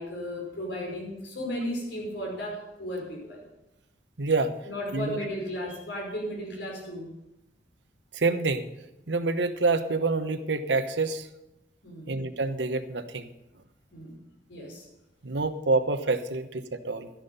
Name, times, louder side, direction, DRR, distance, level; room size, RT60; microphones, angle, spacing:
voice 1, 0.0-3.4 4.6-7.1 11.8-12.2 13.9-14.2 14.5-14.9, equal, 85° left, 0 dB, 5.1 m, -35 dB
voice 2, 4.2-4.5 4.9-5.2 8.1-8.7 9.1-11.3 12.1-13.3 15.2-17.1, right 3 dB, 80° right, 9 dB, 1.1 m, -27 dB
13.0 x 10.5 x 5.5 m, 0.91 s
head